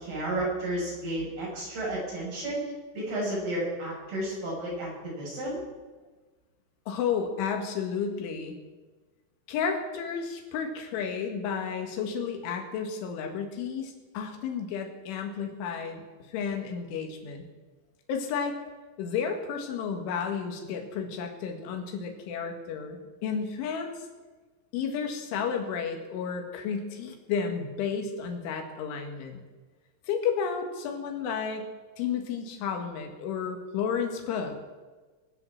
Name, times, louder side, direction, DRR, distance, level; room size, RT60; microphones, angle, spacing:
voice 1, 0.0-2.6 2.9-5.6, right 1 dB, 50° right, -5 dB, 8.1 m, -32 dB
voice 2, 6.9-8.6 9.5-17.4 18.1-18.6 19.0-24.1 24.7-29.4 30.1-31.7 32.0-34.6, left 6 dB, 75° left, 3 dB, 4.2 m, -32 dB
22.0 x 7.9 x 7.3 m, 1.3 s
omnidirectional pair, 5.7 m